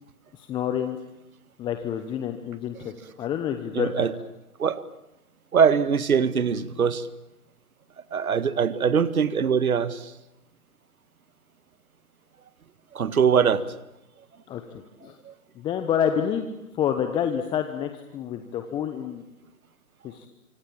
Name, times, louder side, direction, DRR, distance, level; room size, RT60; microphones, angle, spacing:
voice 1, 0.3-1.0 1.6-4.1 14.5-15.2 15.6-16.5 16.7-19.2 20.0-20.3, left 9 dB, 10° left, 7 dB, 1.0 m, -28 dB
voice 2, 3.7-4.1 4.6-4.8 5.5-7.1 8.1-10.1 12.9-13.6 15.2-15.3, right 6 dB, 70° right, 15 dB, 2.0 m, -22 dB
26.0 x 25.0 x 8.8 m, 0.91 s
hypercardioid pair, 140°, 45 cm